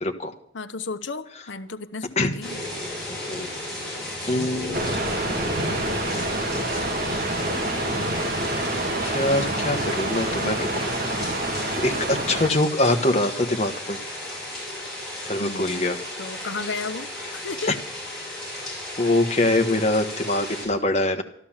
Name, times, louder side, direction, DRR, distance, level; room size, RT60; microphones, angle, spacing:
voice 1, 0.0-0.3 2.2-2.3 3.1-3.5 4.3-4.9 9.0-10.9 11.8-14.0 15.3-16.0 17.7-17.8 19.0-21.2, left 2 dB, 35° left, 5 dB, 1.3 m, -24 dB
voice 2, 0.5-2.6 15.4-17.7, left 4 dB, 75° left, 11 dB, 1.0 m, -34 dB
sound 1, 2.4-20.7, left 1 dB, 5° left, 6.2 m, -34 dB
sound 2, 4.7-12.5, right 1 dB, 50° right, 2.0 m, -27 dB
13.5 x 12.0 x 7.3 m, 0.69 s
head